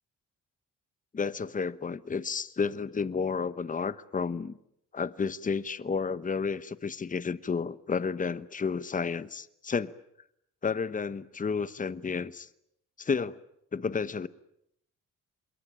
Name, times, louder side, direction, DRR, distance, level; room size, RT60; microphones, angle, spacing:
voice 1, 1.1-4.5 4.9-10.0 10.6-12.5 13.0-13.4 13.7-14.3, left 5 dB, 25° left, 1.1 m, -31 dB
27.5 x 22.0 x 8.8 m
cardioid pair, 90°, 30 cm